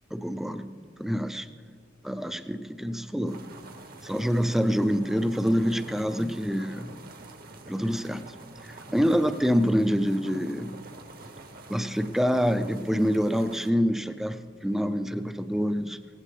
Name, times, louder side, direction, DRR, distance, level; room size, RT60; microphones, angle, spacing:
voice 1, 0.1-1.5 2.0-3.4 4.0-6.9 7.7-8.2 8.6-10.7 11.7-16.0, equal, ahead, 9 dB, 0.4 m, -26 dB
sound 1, 3.3-13.7, right 2 dB, 55° right, 1.1 m, -47 dB
18.0 x 16.0 x 3.3 m, 2.2 s
head